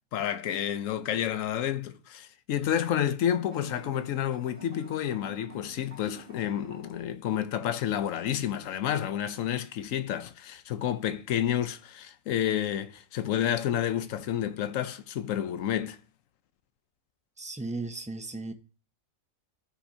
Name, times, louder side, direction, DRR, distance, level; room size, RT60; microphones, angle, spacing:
voice 1, 0.1-16.0, left 10 dB, 85° left, 1.1 m, -30 dB
sound 1, 3.4-7.0, right 3 dB, 45° right, 2.6 m, -50 dB
voice 2, 17.4-18.5, right 3 dB, 10° right, 0.4 m, -36 dB
14.0 x 5.7 x 2.8 m
omnidirectional pair, 1.4 m